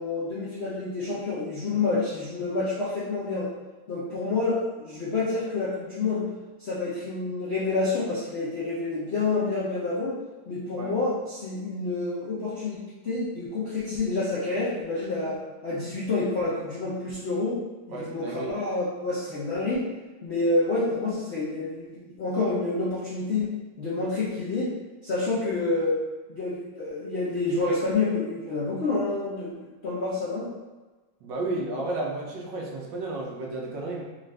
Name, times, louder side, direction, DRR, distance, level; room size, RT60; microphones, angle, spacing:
voice 1, 0.0-3.5 3.9-6.3 6.6-10.1 10.5-12.8 13.0-17.6 17.9-19.9 20.2-24.7 25.0-26.0 26.3-30.5, left 3 dB, 85° left, -8 dB, 0.5 m, -28 dB
voice 2, 17.9-18.6 31.2-34.0, right 2 dB, 75° right, -1 dB, 1.3 m, -32 dB
3.8 x 2.5 x 3.2 m, 1.2 s
omnidirectional pair, 2.2 m